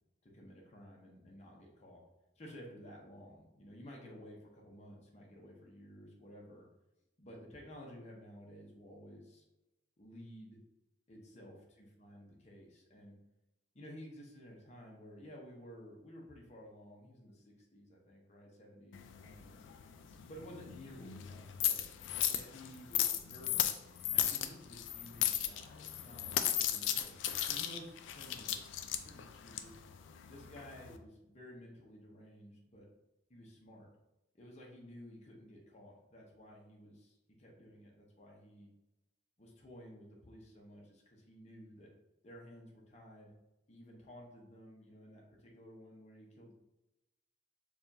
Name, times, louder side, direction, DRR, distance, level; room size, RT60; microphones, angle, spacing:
voice 1, 0.2-2.0 2.4-6.7 7.2-9.4 10.0-10.6 11.1-13.1 13.7-19.6 20.2-21.9 22.3-23.7 24.1-27.2 27.5-29.8 30.3-32.8 33.3-33.9 34.3-38.7 39.4-41.9 42.2-43.3 43.7-46.5, equal, 35° left, -2 dB, 0.8 m, -54 dB
sound 1, 18.9-31.0, left 11 dB, 85° left, 0.3 m, -36 dB
4.9 x 2.4 x 2.7 m, 0.95 s
head